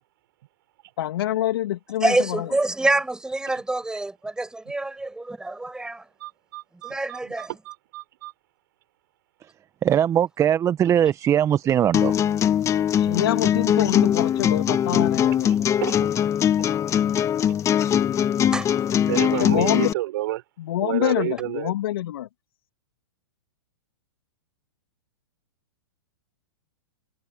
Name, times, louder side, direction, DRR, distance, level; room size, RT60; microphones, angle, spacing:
voice 1, 1.0-2.5 12.9-15.7 19.3-19.9 20.6-22.3, left 13 dB, 60° left, 2.7 m, -26 dB
voice 2, 2.0-6.0 6.8-7.5 18.5-18.7, right 2 dB, 5° right, 6.6 m, -26 dB
voice 3, 6.2-8.3 15.8-16.0 19.1-20.4 20.8-21.7, right 16 dB, 55° right, 5.0 m, -30 dB
voice 4, 9.8-12.2 14.9-15.0, right 10 dB, 20° right, 1.4 m, -21 dB
sound 1, 11.9-19.9, left 9 dB, 20° left, 1.8 m, -21 dB
hypercardioid pair, 115°, 14 cm